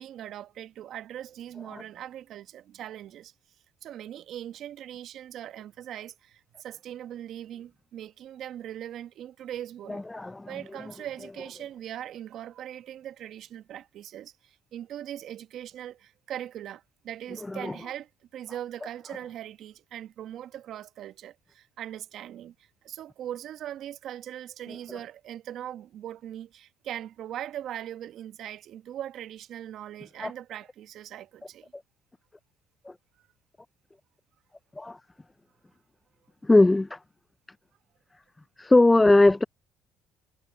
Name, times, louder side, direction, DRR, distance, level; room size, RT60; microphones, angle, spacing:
voice 1, 0.0-3.3 3.8-10.0 10.5-31.7, right 11 dB, 65° right, 1.2 m, -40 dB
voice 2, 9.9-10.5 17.5-17.7 30.2-30.3 32.9-33.0 34.8-35.0 36.4-37.0 38.6-39.4, left 2 dB, 15° left, 0.5 m, -20 dB
hypercardioid pair, 65°, 0 cm